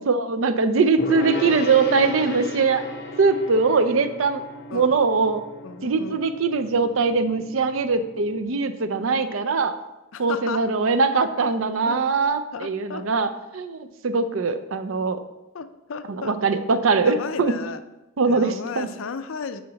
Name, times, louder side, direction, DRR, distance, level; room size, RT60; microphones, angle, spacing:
voice 1, 0.1-2.8 3.2-4.4 4.7-5.4 5.8-9.8 10.2-15.2 16.1-17.6 18.2-18.9, right 4 dB, 75° right, 10 dB, 0.5 m, -22 dB
Gong, 1.0-8.4, left 2 dB, 55° left, 1.0 m, -35 dB
voice 2, 5.6-6.2 10.1-10.7 11.8-12.0 12.5-13.0 15.5-16.4 17.0-17.8 18.2-19.6, left 5 dB, 75° left, 11 dB, 0.5 m, -34 dB
6.3 x 5.9 x 4.0 m, 0.97 s
head